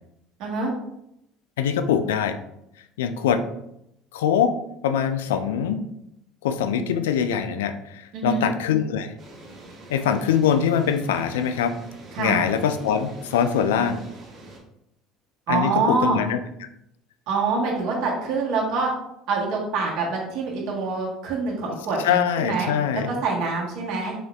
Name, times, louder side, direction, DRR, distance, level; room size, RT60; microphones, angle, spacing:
voice 1, 0.4-0.7 8.1-8.5 12.1-12.4 15.5-16.2 17.3-18.9 19.3-22.7 23.1-24.1, right 4 dB, 65° right, -3 dB, 1.3 m, -25 dB
voice 2, 1.6-2.4 3.0-3.5 4.1-5.8 6.4-9.1 9.9-11.8 12.2-14.0 15.5-16.4 22.0-23.1, left 8 dB, 85° left, 9 dB, 0.4 m, -23 dB
sound 1, 9.2-14.6, right 1 dB, 45° right, 1.6 m, -44 dB
5.1 x 3.7 x 2.3 m, 0.79 s
hypercardioid pair, 70°, 0 cm